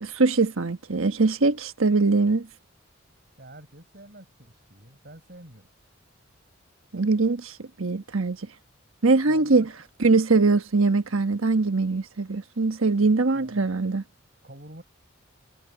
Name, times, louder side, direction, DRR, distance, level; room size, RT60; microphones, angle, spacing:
voice 1, 0.0-2.5 6.9-7.5 7.8-8.4 9.0-9.7 10.0-14.0, right 3 dB, 90° right, 1.3 m, -22 dB
voice 2, 3.4-5.7 9.3-9.7 13.3-13.8 14.4-14.8, right 1 dB, 50° right, 7.2 m, -47 dB
head